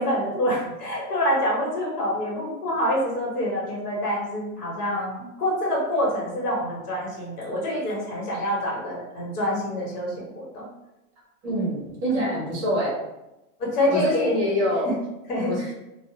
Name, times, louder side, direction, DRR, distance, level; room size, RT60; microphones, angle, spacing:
voice 1, 0.0-10.6 13.6-14.4 15.3-15.5, equal, 75° left, -3 dB, 1.2 m, -26 dB
voice 2, 11.4-12.9 13.9-14.9 15.4-15.7, equal, 20° right, -5 dB, 0.6 m, -25 dB
2.2 x 2.0 x 2.8 m, 0.95 s
supercardioid pair, 165°, 46 cm